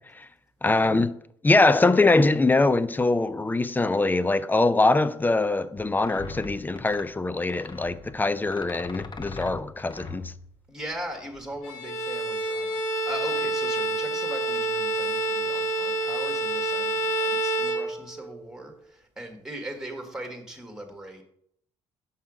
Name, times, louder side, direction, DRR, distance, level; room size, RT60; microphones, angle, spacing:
voice 1, 0.6-1.1 1.4-10.2, left 2 dB, 15° left, 0.5 m, -23 dB
sound 1, 5.8-11.6, left 3 dB, 35° left, 1.0 m, -41 dB
voice 2, 10.7-21.2, right 1 dB, 5° right, 1.6 m, -39 dB
Bowed string instrument, 11.6-18.4, right 2 dB, 85° left, 1.2 m, -28 dB
5.8 x 5.6 x 4.9 m
supercardioid pair, 75°, 12 cm